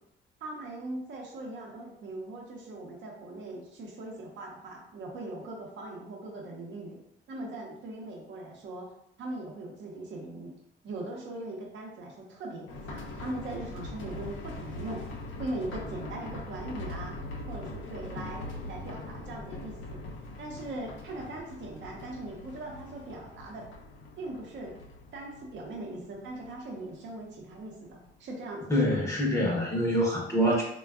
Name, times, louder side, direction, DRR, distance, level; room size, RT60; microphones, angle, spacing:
voice 1, 0.4-7.0 7.3-8.9 9.2-10.5 10.8-15.0 15.4-17.2 17.5-20.0 20.4-23.7 24.2-24.7 25.1-29.0, right 2 dB, 65° right, -1 dB, 0.7 m, -40 dB
sound 1, 12.7-28.1 28.4-28.5 28.9-29.0, left 2 dB, 75° left, 0.5 m, -42 dB
voice 2, 28.7-30.6, equal, 15° left, -4 dB, 0.7 m, -25 dB
3.4 x 2.2 x 2.3 m, 0.75 s
cardioid pair, 90°, 20 cm